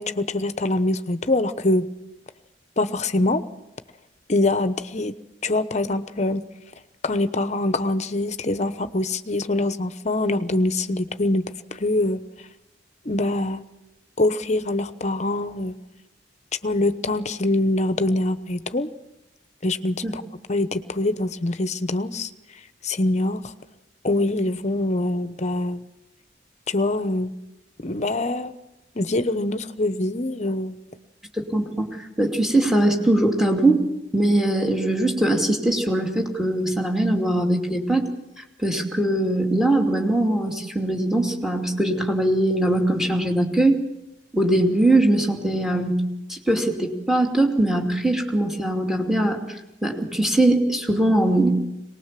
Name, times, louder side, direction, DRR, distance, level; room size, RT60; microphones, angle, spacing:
voice 1, 0.0-1.9 2.8-3.4 4.3-5.1 5.4-6.5 7.0-11.5 11.8-12.2 13.1-13.6 14.2-15.7 16.6-18.9 19.6-20.2 20.5-22.3 22.8-23.4 24.0-25.8 26.7-27.3 27.8-28.5 29.0-30.8, left 2 dB, 40° left, 12 dB, 1.0 m, -24 dB
voice 2, 31.4-31.9 32.2-33.8 34.1-38.1 38.6-43.8 44.3-46.0 46.3-49.4 49.8-51.5, right 1 dB, ahead, 2 dB, 2.7 m, -21 dB
23.0 x 19.5 x 7.6 m, 0.93 s
head